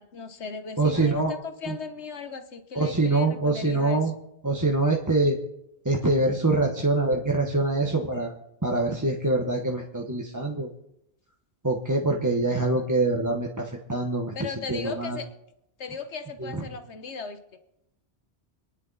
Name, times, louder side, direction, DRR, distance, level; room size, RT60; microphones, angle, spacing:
voice 1, 0.0-4.0 14.3-15.3 15.8-17.6, left 5 dB, 85° left, 9 dB, 1.5 m, -37 dB
voice 2, 0.8-1.3 1.7-1.8 2.7-4.1 4.4-5.4 5.8-8.3 8.6-10.7 11.6-14.3 14.7-15.2 16.4-16.5, right 2 dB, 15° right, 0 dB, 1.3 m, -24 dB
27.0 x 10.5 x 4.1 m, 0.82 s
omnidirectional pair, 1.1 m